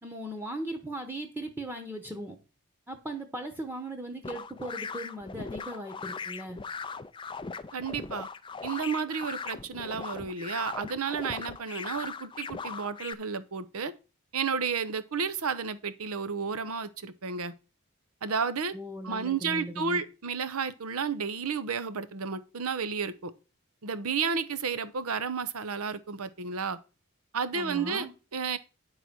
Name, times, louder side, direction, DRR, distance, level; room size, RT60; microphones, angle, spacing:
voice 1, 0.0-2.4 2.9-6.6 18.7-20.0 27.5-28.1, right 1 dB, 10° right, 1.0 m, -38 dB
sound 1, 4.2-13.1, left 5 dB, 20° left, 0.4 m, -39 dB
voice 2, 7.7-8.3 8.6-13.9 14.3-17.5 18.2-18.7 19.0-23.3 23.8-26.8 27.3-28.1 28.3-28.6, right 5 dB, 80° right, 0.8 m, -32 dB
9.7 x 3.9 x 6.0 m
head